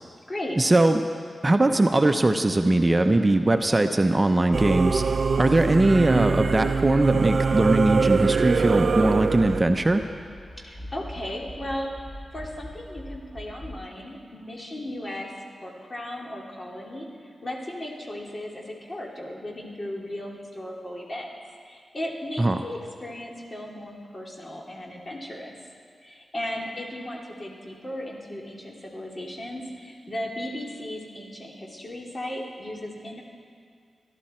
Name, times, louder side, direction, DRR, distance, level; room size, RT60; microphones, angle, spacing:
voice 1, 0.6-1.0 1.4-5.0 5.4-10.0 22.4-22.6, right 2 dB, 30° right, 6 dB, 0.7 m, -20 dB
Singing / Musical instrument, 4.5-9.6, right 4 dB, 60° right, 0.5 m, -23 dB
sound 1, 9.4-13.8, equal, 20° left, 2.7 m, -42 dB
voice 2, 10.6-15.3 15.6-21.3 21.6-25.5 26.0-33.2, left 1 dB, 40° left, -1 dB, 2.9 m, -36 dB
22.5 x 12.0 x 4.4 m, 2.2 s
cardioid pair, 50°, 0 cm